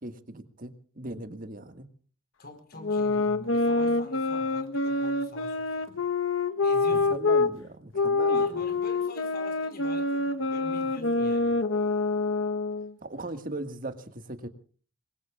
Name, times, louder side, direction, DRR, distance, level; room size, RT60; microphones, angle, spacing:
voice 1, 0.0-1.9 7.1-8.6 13.0-14.5, right 2 dB, 45° right, 8 dB, 1.8 m, -38 dB
voice 2, 2.4-6.0 6.6-7.1 8.3-11.6, left 2 dB, 50° left, 6 dB, 4.4 m, -45 dB
sound 1, 2.8-7.5 7.9-12.9, left 3 dB, 75° left, 1.1 m, -26 dB
27.5 x 22.0 x 2.4 m, 0.43 s
head